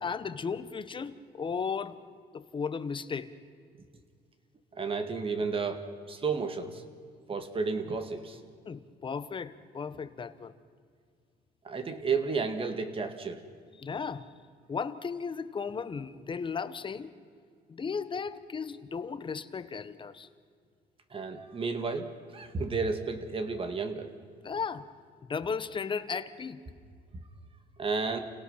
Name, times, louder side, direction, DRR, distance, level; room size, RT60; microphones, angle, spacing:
voice 1, 0.0-2.0 2.3-3.3 8.7-10.5 13.8-14.3 14.7-17.1 17.7-20.3 24.4-24.9 25.2-26.6, left 5 dB, 30° left, 13 dB, 1.1 m, -35 dB
voice 2, 4.7-6.8 7.3-8.4 11.6-13.4 21.1-24.1 27.8-28.2, right 4 dB, 30° right, 7 dB, 2.1 m, -32 dB
29.5 x 18.0 x 5.8 m, 2.1 s
cardioid pair, 110°, 17 cm